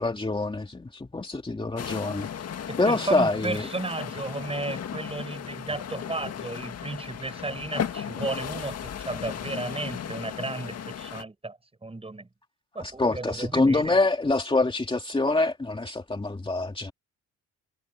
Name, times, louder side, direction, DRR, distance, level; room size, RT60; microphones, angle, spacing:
voice 1, 0.0-2.3 2.8-3.7 12.8-16.9, left 2 dB, 15° left, 2.5 m, -25 dB
sound 1, 1.8-11.2, left 8 dB, 55° left, 1.9 m, -36 dB
voice 2, 2.7-12.3 12.7-13.9, right 2 dB, 20° right, 6.9 m, -34 dB
cardioid pair, 90°, 30 cm